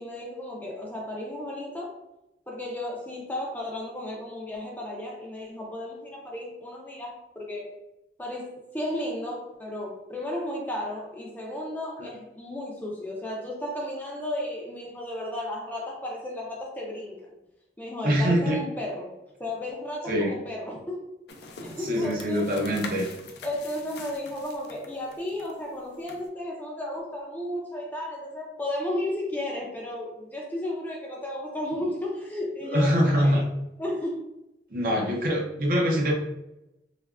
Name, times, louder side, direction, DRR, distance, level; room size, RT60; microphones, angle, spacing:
voice 1, 0.0-1.9 2.5-7.7 8.2-8.5 8.7-17.4 17.8-19.1 19.4-21.0 21.6-22.5 23.4-33.4 33.8-34.2, left 1 dB, 10° left, -2 dB, 0.4 m, -34 dB
voice 2, 18.0-18.6 20.1-20.3 21.8-23.1 32.6-33.4 34.7-36.1, equal, 50° right, 1 dB, 0.5 m, -24 dB
sound 1, 21.3-26.3, left 4 dB, 70° left, 0.4 m, -44 dB
3.2 x 2.2 x 2.3 m, 0.93 s
head